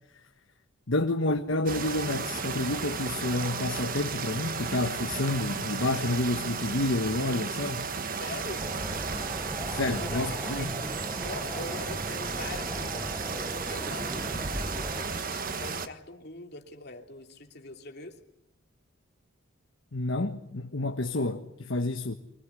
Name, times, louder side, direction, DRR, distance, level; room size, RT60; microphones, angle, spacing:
voice 1, 0.9-7.9 9.7-10.7 19.9-22.1, left 2 dB, 70° left, 1.4 m, -29 dB
sound 1, 1.7-15.9, right 5 dB, 45° right, 1.4 m, -34 dB
voice 2, 8.2-8.6 10.0-10.7 11.2-18.2, left 2 dB, 50° left, 3.0 m, -43 dB
sound 2, 8.6-15.0, equal, ahead, 1.1 m, -39 dB
24.5 x 19.0 x 9.8 m
head